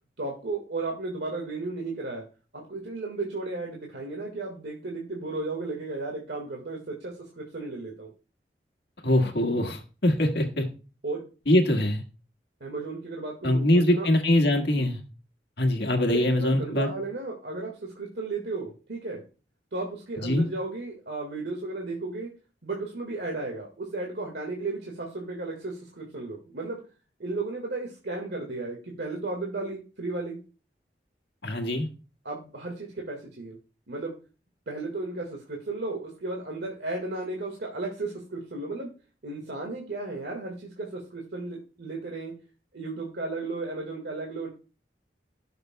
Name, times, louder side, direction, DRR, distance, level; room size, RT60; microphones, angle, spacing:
voice 1, 0.2-2.2 2.5-8.1 11.0-11.2 12.6-14.1 14.7-14.8 16.1-19.2 19.7-22.3 22.6-26.8 27.2-30.4 32.3-33.6 33.9-34.1 34.7-38.9 39.2-42.3 42.7-44.5, right 3 dB, 80° right, 0 dB, 1.7 m, -34 dB
voice 2, 9.0-10.7 11.5-12.0 13.4-15.0 15.6-16.9 20.2-20.5 31.4-31.9, left 1 dB, 70° left, 5 dB, 1.5 m, -23 dB
16.0 x 6.6 x 2.2 m, 0.34 s
head